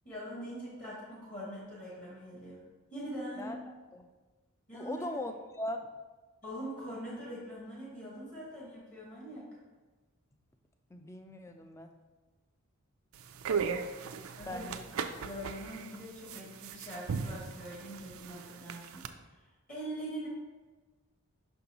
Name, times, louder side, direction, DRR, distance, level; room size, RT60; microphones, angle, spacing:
voice 1, 0.0-2.6 2.9-3.6 4.7-5.1 6.4-9.5 14.3-14.7 15.1-19.1 19.7-20.3, equal, 35° left, -6 dB, 1.5 m, -43 dB
voice 2, 3.4-4.1 4.7-5.9 10.9-11.9 14.2-14.8, left 1 dB, 15° left, 6 dB, 0.3 m, -40 dB
sound 1, 13.1-19.1, right 6 dB, 70° right, 0.4 m, -38 dB
5.9 x 5.4 x 2.9 m, 1.3 s
head